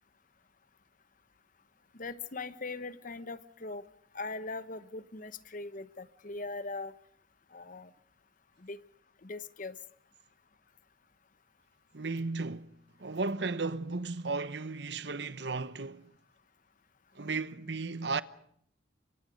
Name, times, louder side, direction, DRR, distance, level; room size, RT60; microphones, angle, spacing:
voice 1, 2.0-3.8 4.1-6.9 7.5-7.9 8.6-8.8 9.2-9.8, left 3 dB, 45° left, 1.0 m, -40 dB
voice 2, 11.9-12.7 13.0-16.1 17.2-18.2, right 3 dB, 65° right, 0.9 m, -34 dB
29.0 x 25.0 x 5.3 m
head